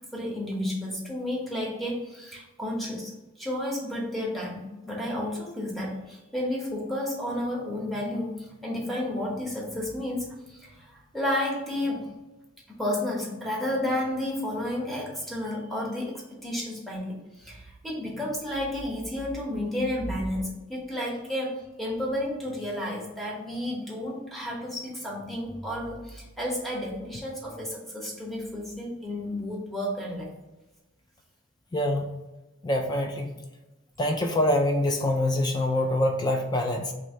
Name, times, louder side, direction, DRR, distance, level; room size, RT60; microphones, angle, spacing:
voice 1, 0.1-3.1 3.4-12.1 12.7-30.3, left 1 dB, ahead, -4 dB, 0.9 m, -32 dB
voice 2, 31.7-32.0 32.6-33.3 34.0-36.9, left 1 dB, 20° left, 4 dB, 0.3 m, -25 dB
3.1 x 2.7 x 4.3 m, 1.1 s
head